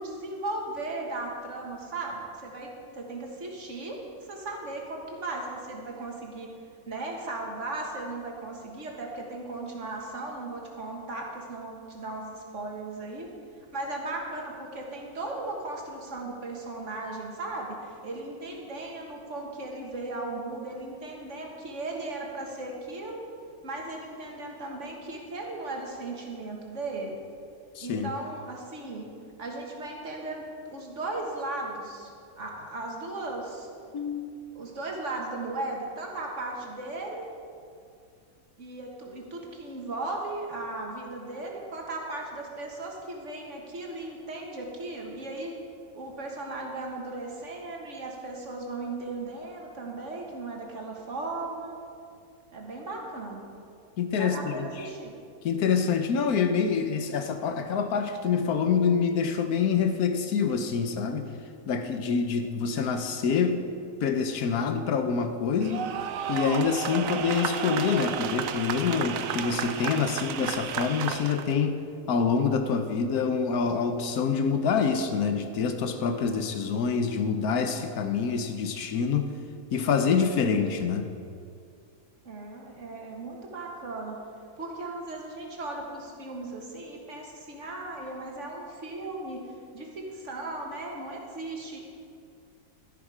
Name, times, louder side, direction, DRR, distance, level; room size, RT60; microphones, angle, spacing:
voice 1, 0.0-4.0 4.3-6.5 6.9-13.3 13.7-23.2 23.6-27.2 27.8-29.1 29.4-32.1 32.4-33.7 34.5-37.3 38.6-45.5 45.9-51.8 52.5-53.5 54.2-55.1 82.3-84.2 84.6-89.5 89.7-91.8, right 2 dB, 55° right, 0 dB, 2.0 m, -36 dB
voice 2, 27.8-28.1 33.9-34.4 54.0-54.9 55.4-61.3 61.7-63.6 64.0-65.9 66.3-71.8 72.1-79.3 79.7-81.1, left 6 dB, 75° left, 8 dB, 1.4 m, -26 dB
sound 1, 65.6-71.5, right 8 dB, 70° right, 1.0 m, -32 dB
12.5 x 11.0 x 5.0 m, 2.3 s
omnidirectional pair, 1.6 m